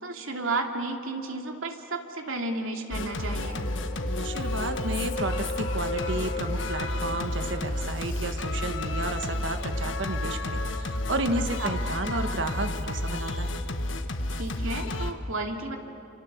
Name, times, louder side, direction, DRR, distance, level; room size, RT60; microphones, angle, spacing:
voice 1, 0.0-3.6 11.6-11.7 14.3-15.8, right 2 dB, 80° right, 3 dB, 2.6 m, -32 dB
Singing, 2.9-15.1, left 1 dB, 65° left, 1.4 m, -31 dB
sound 1, 3.4-7.7, left 2 dB, 40° left, 5.2 m, -37 dB
voice 2, 4.2-13.6, right 2 dB, 60° right, 7 dB, 1.6 m, -32 dB
29.0 x 27.0 x 7.4 m, 2.9 s
head